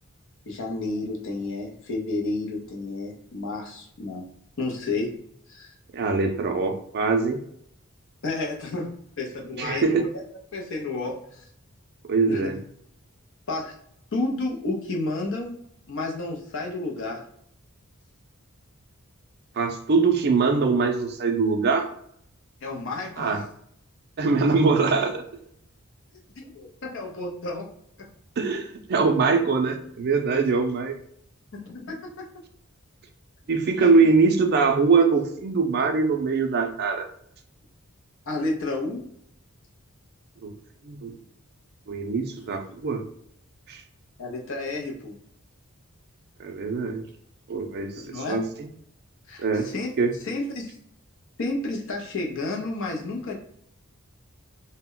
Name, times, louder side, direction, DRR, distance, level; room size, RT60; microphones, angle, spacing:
voice 1, 0.5-4.2 4.6-5.2 5.5-5.7 8.2-11.4 12.3-12.6 13.5-13.7 14.1-15.6 15.9-17.2 22.6-23.5 24.5-24.6 26.4-27.7 28.0-28.1 31.5-32.3 33.8-33.9 38.3-39.1 44.2-45.1 48.0-48.4 49.3-49.9 50.2-50.8 51.4-53.3, left 2 dB, 60° left, 0 dB, 0.6 m, -31 dB
voice 2, 5.9-7.4 9.6-10.0 12.1-12.6 19.6-21.9 23.2-23.4 24.2-25.2 28.4-30.9 33.5-37.1 40.4-40.5 40.8-41.1 41.9-43.0 43.7-43.8 46.4-47.0 47.5-48.4 49.4-49.7 50.0-50.1, right 4 dB, 50° right, 5 dB, 0.4 m, -22 dB
2.1 x 2.1 x 3.7 m, 0.70 s
head